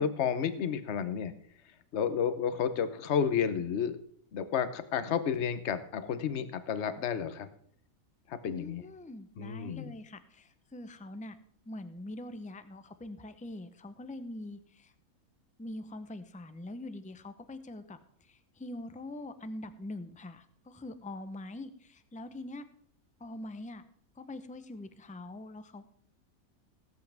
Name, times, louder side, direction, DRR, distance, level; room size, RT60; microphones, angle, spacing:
voice 1, 0.0-1.3 1.9-4.0 4.3-7.5 8.3-8.8 9.4-9.9, left 7 dB, 55° left, 11 dB, 1.1 m, -31 dB
voice 2, 8.4-11.4 11.7-14.9 15.6-22.6 23.2-23.8 24.2-25.9, left 1 dB, 10° left, 10 dB, 0.6 m, -43 dB
18.5 x 8.4 x 3.5 m, 0.63 s
omnidirectional pair, 1.5 m